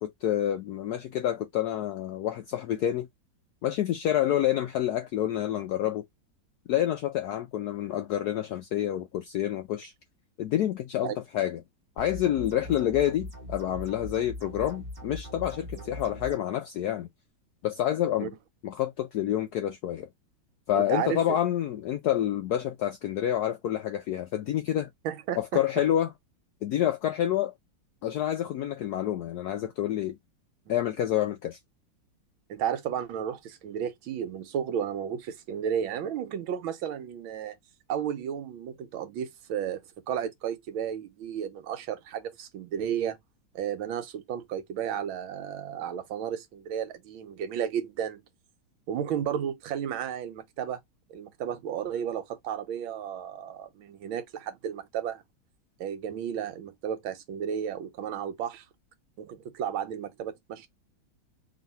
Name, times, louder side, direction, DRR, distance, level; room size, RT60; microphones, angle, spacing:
voice 1, 0.0-3.1 3.6-6.0 6.7-9.9 10.4-11.6 12.0-17.1 17.6-18.3 18.6-20.1 20.7-24.9 25.4-26.1 26.6-27.5 28.0-30.2 30.7-31.6, left 11 dB, 80° left, 0.8 m, -28 dB
sound 1, 12.0-16.4, left 1 dB, 25° right, 1.1 m, -41 dB
voice 2, 20.7-21.4 25.0-25.8 30.7-30.8 32.5-37.6 37.9-39.8 40.1-43.2 43.5-48.2 48.9-50.8 51.1-55.2 55.8-58.6 59.2-60.7, right 9 dB, 85° right, 1.6 m, -33 dB
3.2 x 2.9 x 4.0 m
omnidirectional pair, 2.2 m